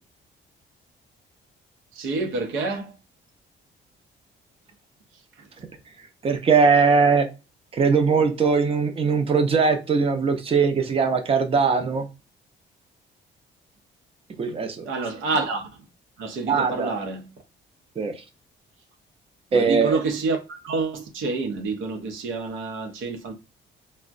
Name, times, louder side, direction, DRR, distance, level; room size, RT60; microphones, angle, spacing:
voice 1, 1.9-3.0 5.4-5.5 14.8-15.7 16.2-17.3 19.5-23.3, right 3 dB, 85° right, 0.7 m, -28 dB
voice 2, 6.2-7.3 7.7-12.1 14.4-14.9 16.5-16.9 18.0-18.1 19.5-20.0, right 5 dB, 30° right, 0.6 m, -20 dB
3.4 x 2.1 x 2.4 m
cardioid pair, 90°, 20 cm